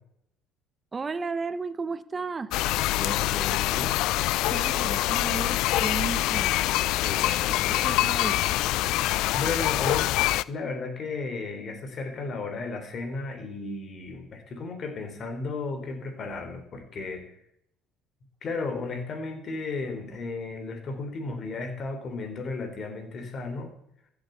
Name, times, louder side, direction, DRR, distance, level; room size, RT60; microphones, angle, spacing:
voice 1, 0.9-2.7 4.4-6.5 7.2-8.4, right 4 dB, 30° right, 15 dB, 1.1 m, -34 dB
sound 1, 2.5-10.4, left 16 dB, 75° left, 0.4 m, -25 dB
voice 2, 2.7-4.0 7.0-8.1 9.3-17.3 18.4-23.7, left 3 dB, 45° left, 7 dB, 4.1 m, -34 dB
14.5 x 8.2 x 8.2 m, 0.73 s
supercardioid pair, 85°, 0 cm